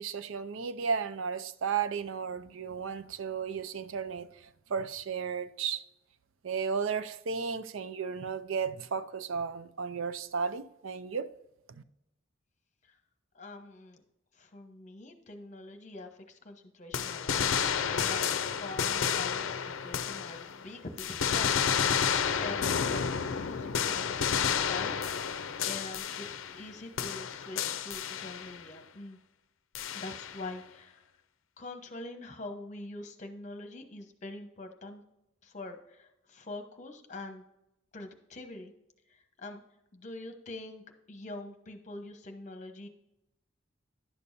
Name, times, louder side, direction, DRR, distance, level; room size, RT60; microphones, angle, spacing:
voice 1, 0.0-5.8 6.4-11.3 11.7-11.8, right 6 dB, 80° right, 0.5 m, -34 dB
voice 2, 13.3-14.0 14.3-17.5 17.8-25.3 25.6-29.2 29.9-31.0 31.6-35.0 35.4-37.4 37.9-38.7 39.1-39.6 39.9-42.9, left 2 dB, 35° left, 1.0 m, -44 dB
sound 1, 16.9-20.6 21.0-26.7 27.0-28.6 29.7-30.5, left 7 dB, 80° left, 0.5 m, -31 dB
11.0 x 6.8 x 2.7 m
head